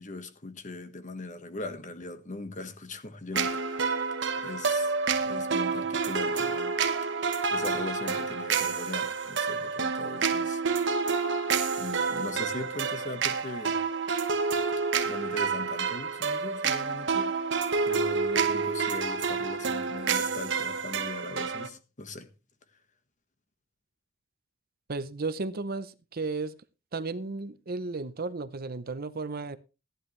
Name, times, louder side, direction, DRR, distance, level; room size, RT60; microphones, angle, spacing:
voice 1, 0.0-4.0 4.4-4.9 5.2-6.8 7.5-10.6 11.8-13.8 15.0-17.3 17.8-22.3, left 2 dB, 40° left, 1.5 m, -40 dB
sound 1, 3.3-21.7, right 5 dB, 65° right, 1.3 m, -29 dB
voice 2, 24.9-26.5 26.9-29.6, right 3 dB, 50° right, 0.7 m, -34 dB
15.0 x 10.5 x 3.3 m
head